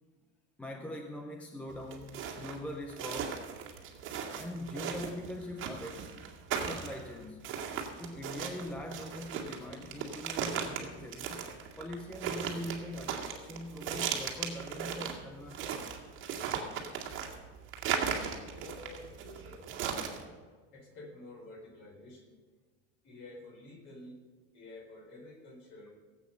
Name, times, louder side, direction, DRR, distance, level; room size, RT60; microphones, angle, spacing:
voice 1, 0.6-3.5 4.4-6.1 6.6-7.5 8.0-11.5 11.8-15.8, left 1 dB, 5° left, 3 dB, 0.4 m, -42 dB
sound 1, 1.7-20.2, right 7 dB, 35° right, 2.0 m, -37 dB
voice 2, 18.5-19.7 20.1-20.3 20.7-22.4 23.0-24.2 24.5-26.0, left 2 dB, 30° left, 1 dB, 3.9 m, -50 dB
17.5 x 8.3 x 6.6 m, 1.5 s
supercardioid pair, 170°, 36 cm